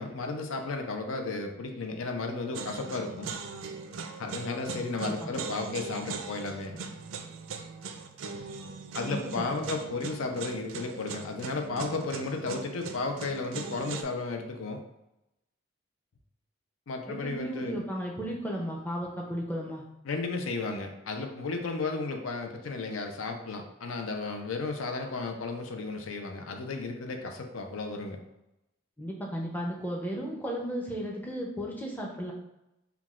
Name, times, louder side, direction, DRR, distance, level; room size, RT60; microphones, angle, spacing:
voice 1, 0.0-3.3 4.2-6.8 8.9-14.8 16.9-17.8 20.0-28.2, left 3 dB, 85° left, 4 dB, 0.5 m, -34 dB
sound 1, 2.5-14.0, right 4 dB, 80° right, 0.4 m, -40 dB
voice 2, 5.0-5.3 9.1-9.3 9.6-9.7 17.1-19.8 29.0-32.3, equal, 10° left, -2 dB, 0.5 m, -34 dB
5.8 x 2.3 x 2.4 m, 0.90 s
head